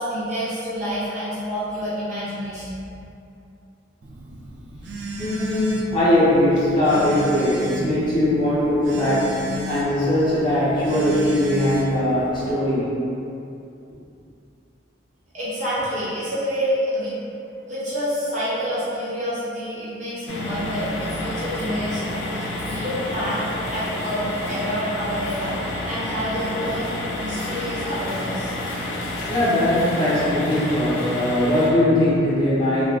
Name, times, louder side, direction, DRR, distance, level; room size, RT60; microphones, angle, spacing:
voice 1, 0.0-2.8 15.3-17.1 17.7-23.4 23.7-28.5, equal, 40° right, -11 dB, 0.9 m, -28 dB
Telephone, 4.0-12.5, equal, 65° right, 0.3 m, -34 dB
voice 2, 5.2-13.0 29.0-32.8, left 1 dB, 25° left, -11 dB, 0.6 m, -20 dB
sound 1, 20.3-31.7, left 1 dB, 85° left, 0.4 m, -29 dB
2.4 x 2.3 x 3.2 m, 2.6 s
head